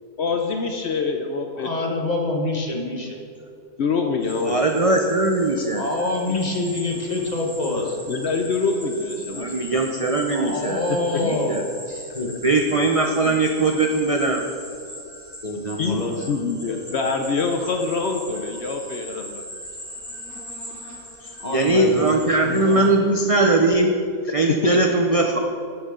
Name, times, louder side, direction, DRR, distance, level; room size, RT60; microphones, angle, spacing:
voice 1, 0.2-1.7 3.8-4.6 6.3-6.4 8.1-9.5 11.1-11.2 12.7-12.8 13.3-13.4 15.8-19.4 24.6-25.0, left 4 dB, 60° left, 4 dB, 0.8 m, -25 dB
voice 2, 1.6-3.2 5.7-8.0 10.3-11.6 11.9-12.3 15.4-16.8 21.4-22.8, left 2 dB, 30° left, 0 dB, 1.2 m, -26 dB
sound 1, 4.2-22.9, equal, 10° left, 1.8 m, -40 dB
voice 3, 4.4-5.8 9.3-10.8 11.2-11.6 12.4-14.4 21.5-23.9 24.3-25.4, right 2 dB, 55° right, 3 dB, 0.3 m, -20 dB
12.0 x 7.8 x 3.7 m, 2.4 s
omnidirectional pair, 1.5 m